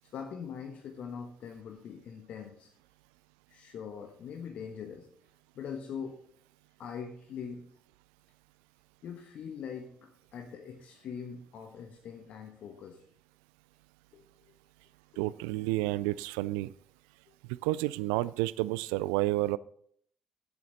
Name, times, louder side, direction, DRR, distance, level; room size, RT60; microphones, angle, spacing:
voice 1, 0.1-2.7 3.5-5.1 5.5-6.2 6.8-7.7 9.0-13.0 14.1-14.5, left 7 dB, 55° left, 4 dB, 1.1 m, -42 dB
voice 2, 15.2-16.7 17.5-19.6, right 18 dB, 70° right, 19 dB, 0.3 m, -30 dB
11.0 x 8.3 x 4.0 m, 0.63 s
figure-of-eight pair, 45°, 3 cm